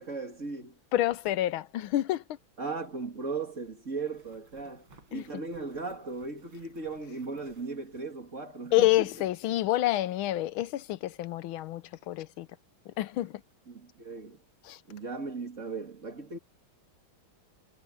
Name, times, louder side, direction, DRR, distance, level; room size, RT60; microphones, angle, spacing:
voice 1, 0.0-0.8 2.6-8.9 13.7-14.4 14.9-16.4, right 4 dB, 35° right, 3.1 m, -37 dB
voice 2, 0.9-2.2 5.1-5.2 8.7-12.5 12.9-13.4 14.6-14.8, left 15 dB, 80° left, 1.5 m, -28 dB
sound 1, 4.0-8.7 8.9-9.0 12.0-12.1 12.5-12.6 12.9-13.6, right 3 dB, 70° right, 6.0 m, -60 dB
omnidirectional pair, 2.3 m